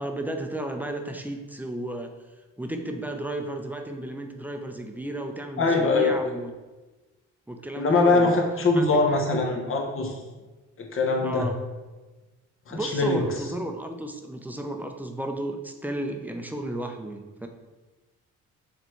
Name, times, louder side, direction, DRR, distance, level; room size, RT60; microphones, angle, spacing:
voice 1, 0.0-2.1 2.6-6.5 7.5-8.4 8.7-9.0 11.2-11.6 12.7-17.5, right 1 dB, 5° right, 4 dB, 0.7 m, -33 dB
voice 2, 5.6-6.1 7.8-10.2 10.8-11.5 12.7-13.2, left 3 dB, 45° left, 2 dB, 1.3 m, -22 dB
6.9 x 3.4 x 4.6 m, 1.2 s
cardioid pair, 90°, 30 cm